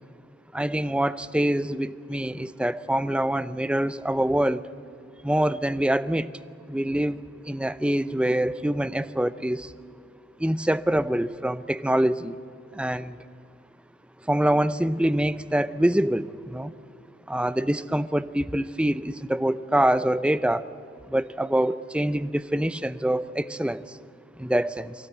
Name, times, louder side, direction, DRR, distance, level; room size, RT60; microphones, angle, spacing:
voice 1, 0.5-4.6 5.2-6.3 6.7-7.2 7.5-9.7 10.4-12.3 12.7-13.1 14.3-16.7 17.3-20.7 21.1-23.8 24.4-24.9, right 1 dB, 5° right, 15 dB, 0.5 m, -25 dB
23.5 x 16.0 x 9.5 m, 2.3 s
head